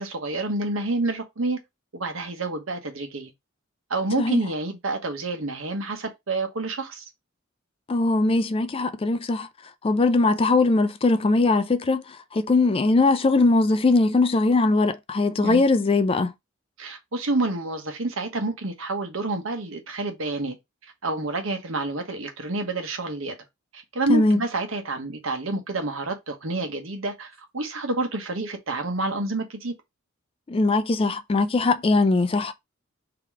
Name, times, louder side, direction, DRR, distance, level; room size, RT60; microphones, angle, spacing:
voice 1, 0.0-1.6 1.9-3.3 3.9-7.0 15.4-15.6 16.8-20.6 21.0-23.3 23.7-29.7, right 2 dB, 75° right, 1.1 m, -28 dB
voice 2, 7.9-9.5 9.8-16.3 24.1-24.4 30.5-32.5, left 3 dB, 25° left, 0.4 m, -21 dB
3.7 x 2.9 x 4.7 m
head